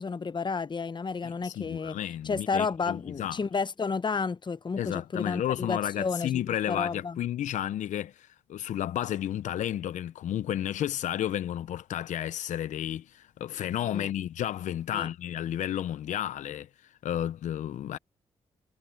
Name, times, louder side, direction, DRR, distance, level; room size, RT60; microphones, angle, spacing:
voice 1, 0.0-2.0 2.2-7.2 13.9-14.1 14.9-15.1, left 5 dB, 35° left, 0.9 m, -31 dB
voice 2, 1.2-3.4 4.8-16.7 17.0-18.0, left 11 dB, 75° left, 0.7 m, -32 dB
supercardioid pair, 50°, 13 cm